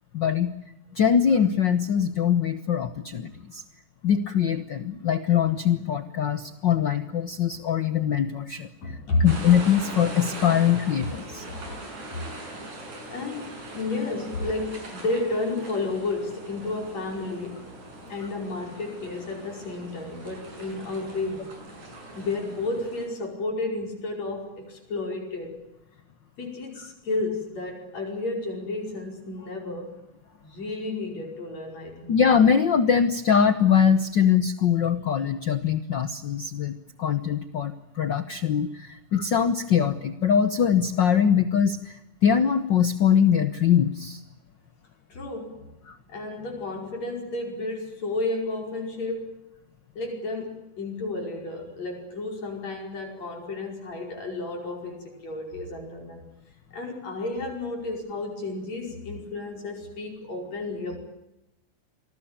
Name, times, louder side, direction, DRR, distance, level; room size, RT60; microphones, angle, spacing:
voice 1, 0.1-0.5 0.9-3.6 4.0-11.4 32.1-44.2 45.9-46.0, left 8 dB, 85° left, 11 dB, 1.0 m, -22 dB
voice 2, 8.8-9.3 11.5-11.6 13.1-17.7 18.1-21.5 22.1-25.6 26.4-30.0 30.4-32.2 45.1-45.7 46.1-49.4 50.0-56.3 56.7-61.0, left 2 dB, 55° left, 2 dB, 6.3 m, -32 dB
sound 1, 9.3-23.1, right 2 dB, 70° right, 7.8 m, -41 dB
27.0 x 20.0 x 8.9 m, 0.87 s
omnidirectional pair, 3.6 m